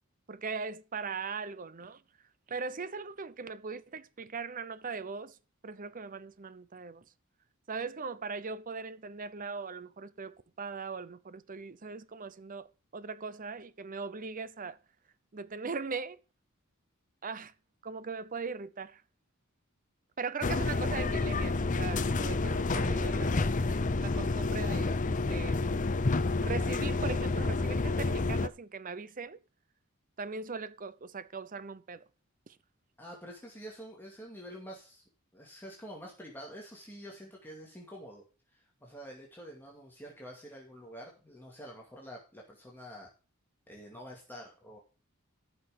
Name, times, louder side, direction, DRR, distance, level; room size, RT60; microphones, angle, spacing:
voice 1, 0.3-2.0 2.5-5.4 5.6-7.0 7.7-14.8 15.3-16.2 17.2-17.5 17.8-19.0 20.2-23.3 23.7-25.8 26.4-29.4 30.2-32.1 32.5-32.6, right 4 dB, 40° right, 0.7 m, -40 dB
sound 1, 20.4-28.5, left 3 dB, 35° left, 0.7 m, -29 dB
voice 2, 33.0-35.0 35.3-38.2 38.5-43.1 43.7-44.8, equal, 10° left, 2.4 m, -47 dB
14.0 x 6.3 x 5.1 m
head